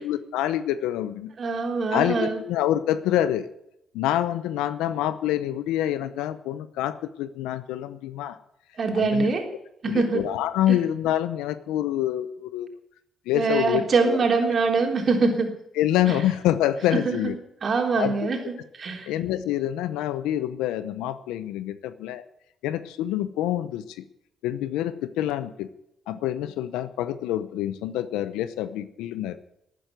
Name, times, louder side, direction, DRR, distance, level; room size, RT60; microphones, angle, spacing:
voice 1, 0.0-1.3 1.9-3.5 3.9-8.4 8.9-9.3 9.9-12.8 13.3-14.2 15.8-17.4 18.0-18.3 19.1-22.2 22.6-24.0 24.4-25.7 26.1-29.4, left 12 dB, 90° left, 13 dB, 0.7 m, -26 dB
voice 2, 1.4-2.4 8.8-9.4 9.8-10.4 10.7-10.8 13.3-15.5 16.1-16.2 16.9-17.3 17.6-19.1, right 4 dB, 50° right, 2 dB, 3.7 m, -24 dB
12.5 x 9.3 x 9.2 m, 0.79 s
supercardioid pair, 65°, 0 cm